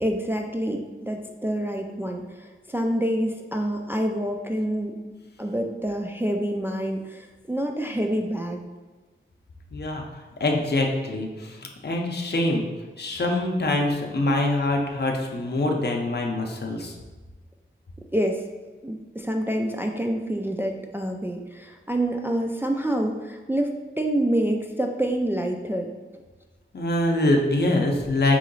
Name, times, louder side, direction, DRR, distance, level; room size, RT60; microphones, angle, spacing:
voice 1, 0.0-5.0 5.4-8.6 18.1-18.4 18.8-25.9, right 1 dB, 10° right, 2 dB, 0.3 m, -27 dB
voice 2, 9.7-10.0 10.4-12.7 13.0-16.9 26.7-28.4, left 2 dB, 55° left, 1 dB, 0.6 m, -24 dB
3.7 x 3.1 x 3.9 m, 1.3 s
wide cardioid pair, 85°, 20 cm